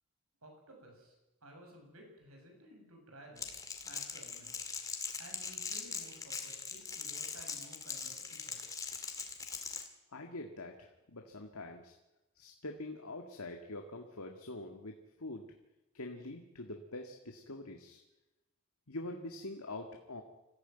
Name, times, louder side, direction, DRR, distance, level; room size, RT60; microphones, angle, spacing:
voice 1, 0.4-1.1 1.4-3.5 3.8-4.5 5.2-8.6, right 1 dB, 80° right, 2 dB, 7.3 m, -55 dB
Crackle, 3.4-9.9, left 5 dB, 15° left, 2.0 m, -41 dB
voice 2, 10.1-12.0 12.4-15.5 15.9-18.0 18.9-20.2, left 2 dB, 90° left, 3 dB, 2.0 m, -45 dB
25.0 x 15.0 x 9.1 m, 0.99 s
head